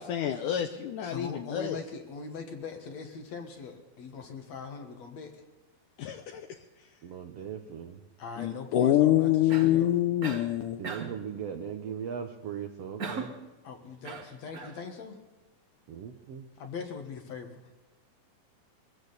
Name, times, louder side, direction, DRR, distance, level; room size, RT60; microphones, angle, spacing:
voice 1, 0.0-1.8 6.0-6.6 8.4-10.8, left 12 dB, 75° left, 6 dB, 2.1 m, -26 dB
voice 2, 1.0-5.4 8.2-9.9 13.6-15.2 16.6-17.6, left 5 dB, 55° left, 4 dB, 2.3 m, -41 dB
voice 3, 7.0-8.0 10.8-13.3 15.9-16.5, right 8 dB, 75° right, 5 dB, 1.5 m, -38 dB
Cough, 9.5-9.8 10.2-10.5 10.8-11.2 13.0-13.4 14.0-14.8, right 5 dB, 55° right, 0.9 m, -38 dB
22.5 x 15.5 x 4.1 m, 1.1 s
omnidirectional pair, 4.2 m